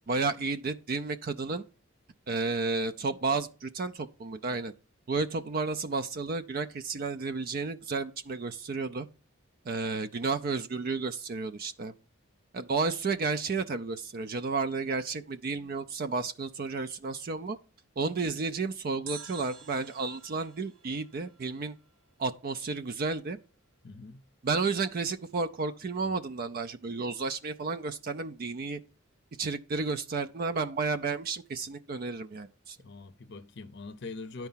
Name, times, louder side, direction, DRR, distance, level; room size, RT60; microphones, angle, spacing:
voice 1, 0.1-1.6 2.3-4.7 5.1-9.1 9.7-11.9 12.5-17.6 18.0-21.8 22.2-23.4 24.4-28.8 29.4-32.8, right 4 dB, 45° right, 0.4 m, -32 dB
sound 1, 19.1-22.1 22.4-22.5, right 6 dB, 80° right, 1.5 m, -49 dB
voice 2, 23.8-24.2 32.8-34.5, left 3 dB, 55° left, 0.6 m, -43 dB
10.5 x 4.6 x 5.6 m
head